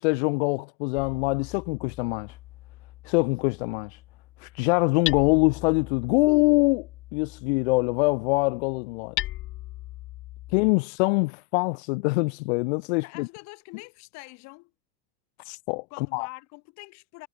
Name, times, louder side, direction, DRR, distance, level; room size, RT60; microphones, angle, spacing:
voice 1, 0.0-2.4 3.0-4.0 4.4-6.9 7.1-9.1 10.5-13.3 15.4-15.8 16.1-16.3, left 28 dB, 90° left, 1.0 m, -24 dB
Hammer, 0.9-10.7, left 16 dB, 40° left, 1.2 m, -39 dB
voice 2, 10.5-10.8 11.1-11.3 13.0-14.7 15.9-17.3, left 25 dB, 55° left, 5.8 m, -45 dB
cardioid pair, 170°, 32 cm